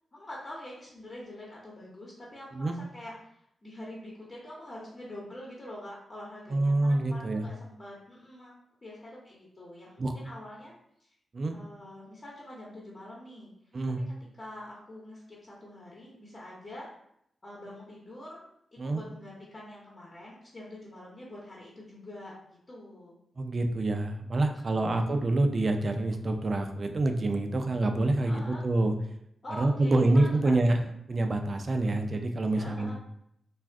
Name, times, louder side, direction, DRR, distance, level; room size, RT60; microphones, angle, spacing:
voice 1, 0.1-8.5 8.8-10.7 11.0-11.1 11.5-13.5 14.4-16.9 17.4-18.4 18.7-23.1 24.7-25.1 28.2-28.6 29.4-30.5 32.6-32.9, left 1 dB, 35° left, -6 dB, 0.9 m, -45 dB
voice 2, 6.5-7.4 10.0-10.1 11.3-11.5 13.7-14.0 18.8-19.0 23.4-28.9 29.6-30.8 31.1-32.9, right 2 dB, 45° right, 5 dB, 0.4 m, -26 dB
2.4 x 2.3 x 3.4 m, 0.73 s
cardioid pair, 75°, 0 cm